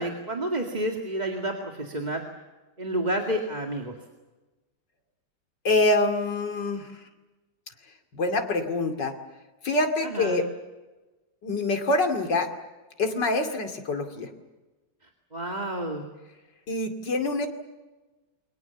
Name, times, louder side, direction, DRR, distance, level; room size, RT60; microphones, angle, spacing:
voice 1, 0.0-2.2 2.8-4.0 10.0-10.4 15.3-16.0, right 1 dB, 25° right, 2 dB, 2.2 m, -30 dB
voice 2, 5.6-6.9 8.1-9.1 9.6-10.4 11.4-12.5 13.0-14.3 16.7-17.5, left 2 dB, 85° left, 6 dB, 3.2 m, -25 dB
28.5 x 23.5 x 7.1 m, 1.2 s
omnidirectional pair, 1.9 m